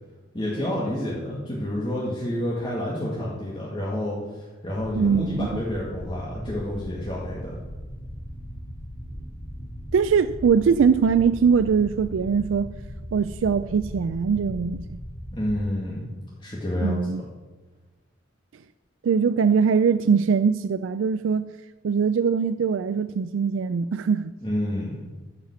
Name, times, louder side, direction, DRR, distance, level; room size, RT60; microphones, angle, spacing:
voice 1, 0.3-7.6 15.3-16.1 16.4-17.1 24.4-25.0, left 1 dB, 25° left, 2.1 m, -29 dB
sound 1, 4.8-15.6, equal, 50° left, 3.2 m, -38 dB
voice 2, 5.0-5.6 9.9-12.7 13.1-15.0 16.8-17.2 19.0-21.5 21.8-24.3, right 6 dB, 75° right, 0.4 m, -22 dB
14.5 x 5.7 x 7.2 m
head